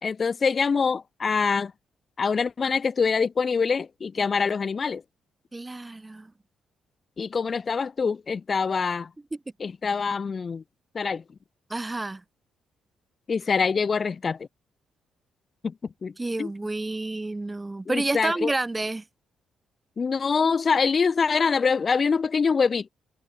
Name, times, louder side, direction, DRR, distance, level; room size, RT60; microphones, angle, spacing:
voice 1, 0.0-1.7 2.2-5.0 7.2-9.1 9.6-10.6 10.9-11.2 13.3-14.5 15.6-15.7 16.0-16.1 16.4-16.5 17.9-18.5 20.0-22.9, left 5 dB, 40° left, 2.1 m, -24 dB
voice 2, 5.5-6.3 11.7-12.2 16.2-19.0, right 2 dB, 15° right, 2.5 m, -29 dB
cardioid pair, 90°, 0 cm